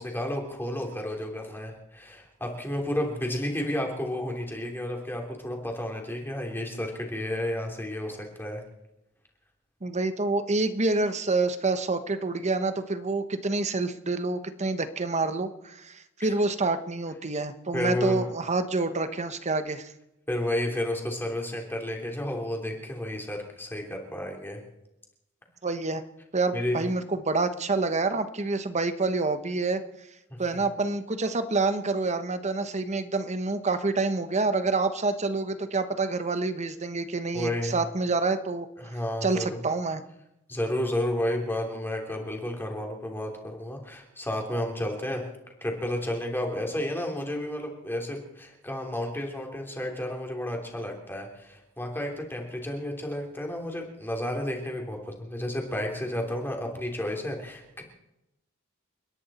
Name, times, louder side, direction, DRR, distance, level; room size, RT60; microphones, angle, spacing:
voice 1, 0.0-8.6 16.2-16.3 17.7-18.2 20.3-24.6 26.5-26.8 37.3-37.7 38.8-39.5 40.5-45.2 45.6-57.8, left 1 dB, 10° left, 1 dB, 3.2 m, -31 dB
voice 2, 9.8-19.9 25.6-26.0 26.3-29.8 30.4-38.7 39.2-40.0, right 3 dB, 30° right, 10 dB, 1.1 m, -27 dB
30.0 x 11.0 x 4.3 m, 0.89 s
head